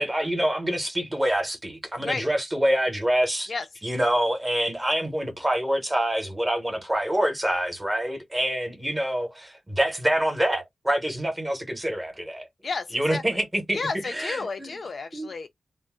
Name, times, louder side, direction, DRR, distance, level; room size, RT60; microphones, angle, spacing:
voice 1, 0.0-3.5 3.8-12.5 12.9-13.8 14.0-14.7 15.1-15.3, right 1 dB, 10° right, 0.8 m, -26 dB
voice 2, 12.6-13.4 13.7-15.5, left 4 dB, 45° left, 0.4 m, -32 dB
2.5 x 2.0 x 3.5 m
wide cardioid pair, 175°, 0 cm